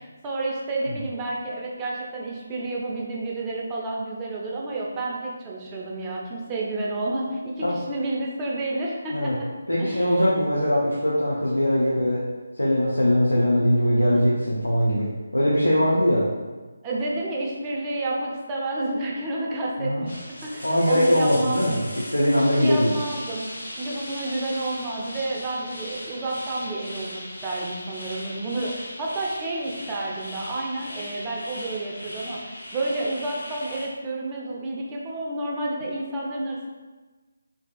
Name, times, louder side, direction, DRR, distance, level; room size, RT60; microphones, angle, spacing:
voice 1, 0.0-9.5 9.8-10.1 14.1-14.2 16.8-21.8 22.5-36.7, right 2 dB, 15° right, -3 dB, 0.4 m, -30 dB
voice 2, 9.7-12.3 12.6-16.3 19.8-20.0 20.6-22.9, equal, 80° left, -6 dB, 0.5 m, -21 dB
sound 1, 20.1-33.9, left 1 dB, 50° left, 0.8 m, -38 dB
3.2 x 2.6 x 2.4 m, 1.3 s
figure-of-eight pair, 150°, 0 cm